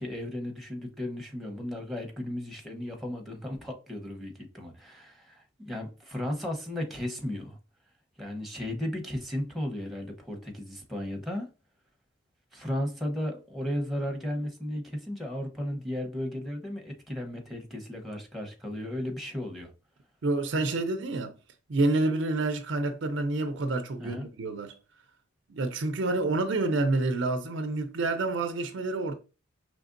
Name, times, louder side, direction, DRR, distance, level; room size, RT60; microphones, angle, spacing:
voice 1, 0.0-7.6 8.2-11.5 12.5-19.7 24.0-24.3, left 1 dB, ahead, 0.9 m, -35 dB
voice 2, 20.2-21.3 21.7-24.7 25.5-29.1, right 2 dB, 55° right, 0.5 m, -28 dB
5.0 x 3.2 x 2.5 m
head